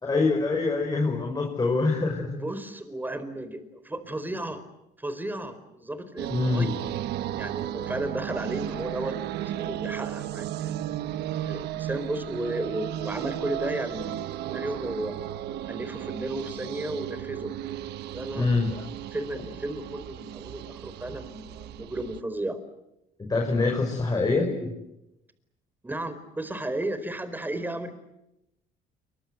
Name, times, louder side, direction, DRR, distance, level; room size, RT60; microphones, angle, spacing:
voice 1, 0.0-2.4 6.3-6.7 18.4-18.9 23.3-24.7, left 3 dB, 20° left, 2 dB, 5.7 m, -25 dB
voice 2, 2.4-4.6 5.0-6.8 7.3-10.7 11.5-15.1 15.7-17.5 18.1-18.5 18.9-22.6 25.8-27.9, right 1 dB, 10° right, 11 dB, 4.5 m, -34 dB
sound 1, 6.2-22.2, right 12 dB, 75° right, 1.1 m, -34 dB
28.5 x 24.5 x 7.9 m, 0.88 s
cardioid pair, 110°, 17 cm